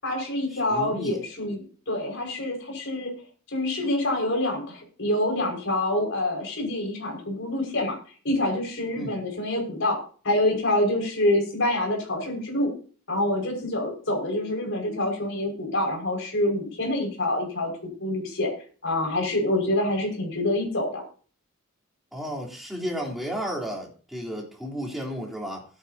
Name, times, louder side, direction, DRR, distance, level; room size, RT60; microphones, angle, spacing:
voice 1, 0.0-3.1 3.5-8.0 8.2-10.0 10.2-12.7 13.1-18.5 18.8-21.0, left 1 dB, 55° left, 5.6 m, -26 dB
voice 2, 0.5-1.2 9.0-9.1 22.1-25.7, equal, ahead, 3.6 m, -33 dB
18.5 x 9.9 x 2.8 m
head